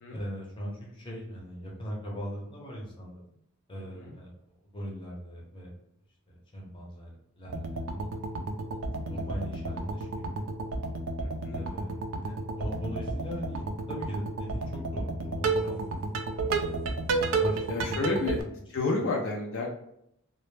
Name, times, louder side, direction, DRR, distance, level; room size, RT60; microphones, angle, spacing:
voice 1, 0.1-3.3 3.7-4.3 4.7-5.7 6.3-7.8 8.8-10.5 11.5-13.6 13.9-16.0 16.6-17.9 18.2-18.4, equal, 25° left, -3 dB, 0.7 m, -40 dB
sound 1, 7.5-18.4, right 3 dB, 65° right, 0.3 m, -32 dB
voice 2, 11.2-11.6 16.0-16.1 17.7-18.4 18.7-19.7, left 3 dB, 65° left, -1 dB, 0.4 m, -31 dB
2.1 x 2.0 x 3.1 m, 0.76 s
head